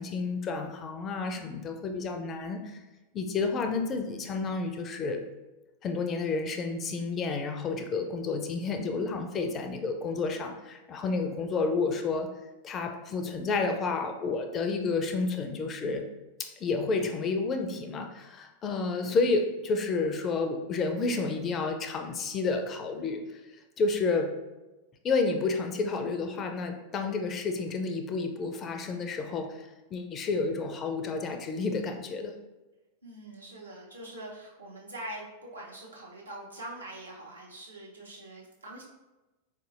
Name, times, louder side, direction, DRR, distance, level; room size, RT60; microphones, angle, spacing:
voice 1, 0.0-2.8 3.1-5.2 5.8-12.3 12.6-16.0 16.4-23.2 23.8-24.3 25.0-32.3, left 4 dB, 30° left, 5 dB, 0.4 m, -30 dB
voice 2, 33.0-38.8, right 1 dB, 80° right, -3 dB, 0.8 m, -43 dB
3.9 x 2.7 x 2.4 m, 1.1 s
figure-of-eight pair, 90°, 0 cm